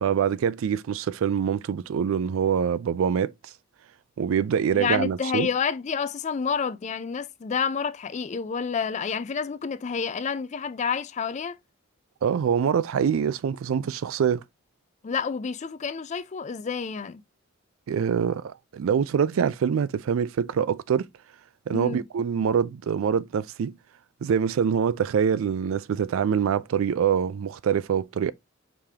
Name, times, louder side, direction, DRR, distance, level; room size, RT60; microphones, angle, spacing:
voice 1, 0.0-3.3 4.2-5.5 12.2-14.4 17.9-21.1 21.7-23.8 24.2-28.3, right 7 dB, 75° right, 0.3 m, -25 dB
voice 2, 4.7-11.6 15.0-17.2 21.7-22.0, left 6 dB, 35° left, 0.3 m, -29 dB
4.9 x 3.6 x 2.8 m
head